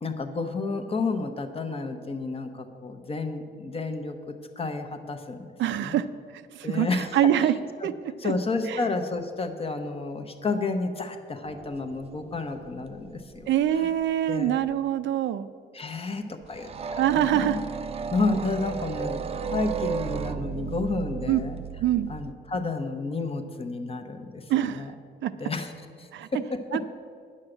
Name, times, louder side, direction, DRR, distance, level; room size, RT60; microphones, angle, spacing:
voice 1, 0.0-5.5 5.8-6.0 6.6-7.5 7.8-7.9 8.2-13.5 13.7-13.9 14.3-14.6 15.7-17.6 18.1-21.6 22.1-24.4 24.7-24.9 25.4-25.7 26.0-26.8, left 3 dB, 30° left, 7 dB, 0.8 m, -31 dB
voice 2, 5.6-6.1 6.5-7.5 7.8-7.9 8.2-8.3 8.7-8.8 13.5-15.5 17.0-17.6 21.3-21.4 21.8-22.1 24.5-24.9 25.2-25.3 26.1-26.3 26.7-26.8, right 11 dB, 85° right, 12 dB, 0.5 m, -24 dB
sound 1, 11.4-14.1 14.4-14.7 16.4-22.3, right 6 dB, 35° right, 0.4 m, -34 dB
9.7 x 6.5 x 7.7 m, 2.1 s
cardioid pair, 150°, 19 cm